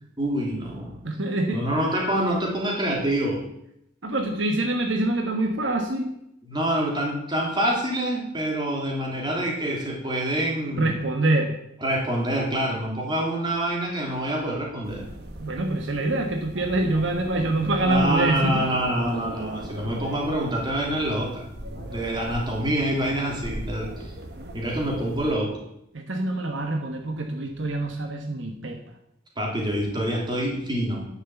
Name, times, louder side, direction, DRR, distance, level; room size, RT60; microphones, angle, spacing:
voice 1, 0.2-1.0 1.5-3.4 6.4-10.9 11.8-15.1 17.8-21.5 21.7-24.1 24.5-25.6 29.4-31.0, right 1 dB, 20° right, -2 dB, 3.2 m, -26 dB
voice 2, 1.0-1.6 4.0-6.1 10.8-11.5 15.4-18.6 25.9-28.8, right 2 dB, 70° right, 3 dB, 1.3 m, -25 dB
sound 1, 14.8-25.3, right 1 dB, 50° right, 1.5 m, -38 dB
11.0 x 6.5 x 7.8 m, 0.78 s
head